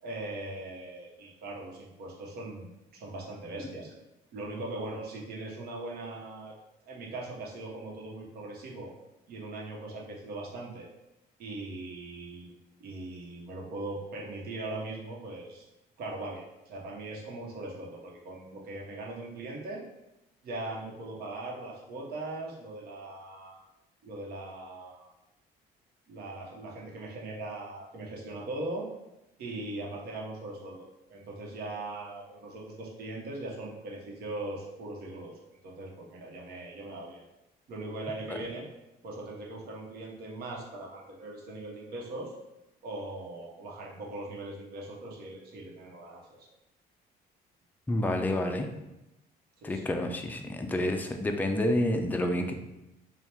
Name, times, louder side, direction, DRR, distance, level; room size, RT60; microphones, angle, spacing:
voice 1, 0.0-3.9 4.3-6.5 6.9-8.9 9.3-10.9 11.4-12.5 12.8-15.7 16.0-19.8 20.4-23.6 24.0-25.1 26.1-28.9 29.4-37.2 37.7-38.7 39.0-42.3 42.8-46.2 49.6-49.9, right 2 dB, 70° right, -2 dB, 1.1 m, -40 dB
voice 2, 47.9-48.7 49.6-52.6, left 1 dB, 10° left, 4 dB, 0.4 m, -29 dB
3.4 x 2.4 x 4.3 m, 0.95 s
cardioid pair, 110°, 17 cm